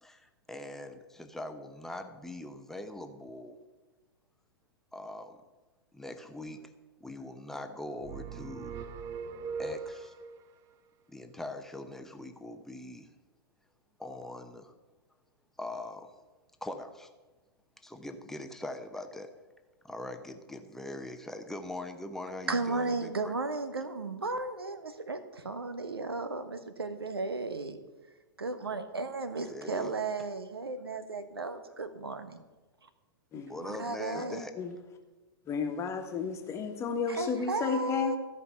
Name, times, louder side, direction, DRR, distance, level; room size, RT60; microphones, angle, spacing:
voice 1, 0.0-3.6 4.9-5.4 5.9-6.6 7.0-8.8 9.6-10.1 11.1-13.1 14.0-14.7 15.6-16.1 16.6-17.1 17.8-19.3 19.8-23.4 29.3-29.9 33.5-34.5, left 1 dB, 5° left, 6 dB, 0.9 m, -42 dB
sound 1, 8.0-10.4, right 5 dB, 25° right, 0.5 m, -40 dB
voice 2, 22.5-27.8 28.4-32.4 33.6-34.4 37.1-38.2, right 3 dB, 75° right, 10 dB, 1.1 m, -35 dB
voice 3, 35.5-38.1, left 5 dB, 20° left, 5 dB, 1.4 m, -32 dB
15.0 x 5.4 x 6.9 m, 1.2 s
figure-of-eight pair, 105°, 13 cm